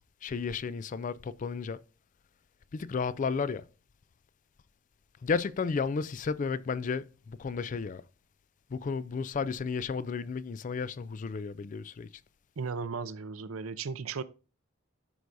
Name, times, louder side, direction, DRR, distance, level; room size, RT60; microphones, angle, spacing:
voice 1, 0.2-1.8 2.7-3.6 5.2-8.0 8.7-12.1, left 5 dB, 40° left, 0.3 m, -33 dB
voice 2, 12.6-14.2, right 5 dB, 90° right, 0.6 m, -36 dB
12.5 x 4.7 x 2.6 m
head